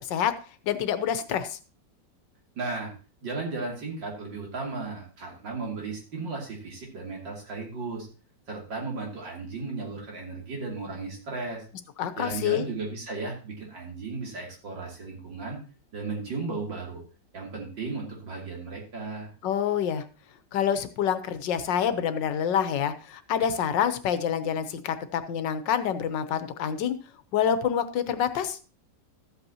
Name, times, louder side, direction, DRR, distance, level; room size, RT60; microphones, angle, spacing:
voice 1, 0.6-1.6 12.0-12.6 19.4-20.0 20.5-27.0 27.3-28.6, left 8 dB, 80° left, 11 dB, 1.5 m, -27 dB
voice 2, 2.6-2.9 3.2-8.1 8.5-11.6 12.2-15.6 15.9-17.0 17.3-19.3, right 3 dB, 85° right, -2 dB, 3.4 m, -35 dB
13.5 x 8.1 x 2.8 m, 0.35 s
omnidirectional pair, 2.0 m